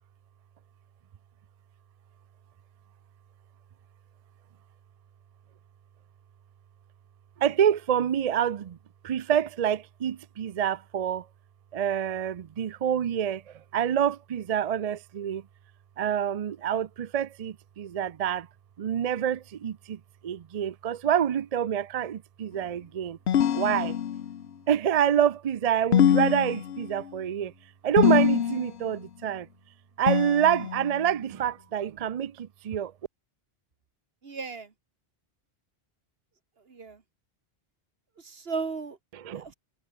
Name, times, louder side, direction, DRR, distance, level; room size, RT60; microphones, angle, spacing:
voice 1, 7.4-8.8 9.0-11.3 11.7-13.4 13.7-15.4 16.0-18.5 18.8-23.2 23.5-24.0 24.7-27.5 27.8-29.5 30.0-32.9 39.1-39.4, right 9 dB, 50° right, 0.5 m, -27 dB
sound 1, 23.3-24.4 25.9-27.1 28.0-28.8 30.1-31.0, left 9 dB, 80° left, 1.1 m, -24 dB
voice 2, 34.2-34.7 36.7-37.0 38.2-39.0 39.3-39.5, right 4 dB, 70° right, 1.9 m, -35 dB
omnidirectional pair, 1.1 m